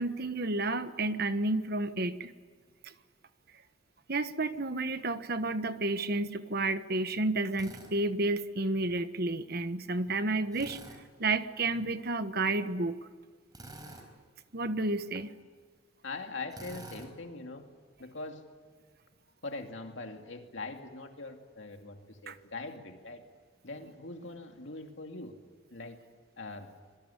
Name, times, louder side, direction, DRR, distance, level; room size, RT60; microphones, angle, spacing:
voice 1, 0.0-2.3 2.8-2.9 4.1-10.8 11.2-13.0 14.5-15.3 22.3-22.4, right 2 dB, 50° right, 10 dB, 1.3 m, -31 dB
Drill, 7.5-7.9 10.5-11.0 13.5-14.1 16.5-17.1, right 1 dB, 20° right, 4.7 m, -47 dB
voice 2, 16.0-17.6 18.0-18.4 19.4-23.2 23.6-25.3 25.7-26.0 26.4-26.7, left 3 dB, 65° left, 4 dB, 2.5 m, -42 dB
25.5 x 22.0 x 9.9 m, 1.5 s
head